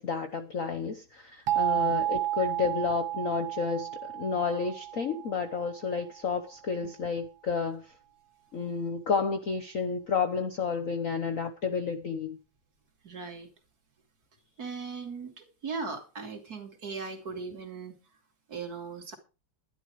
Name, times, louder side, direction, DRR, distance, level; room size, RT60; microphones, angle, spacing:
voice 1, 0.0-7.9 8.5-12.4, left 5 dB, 50° left, 1.1 m, -31 dB
sound 1, 1.5-6.2, right 14 dB, 70° right, 1.9 m, -32 dB
voice 2, 13.0-13.5 14.6-18.0 18.5-19.2, right 4 dB, 45° right, 3.0 m, -38 dB
11.5 x 11.5 x 4.7 m
omnidirectional pair, 2.4 m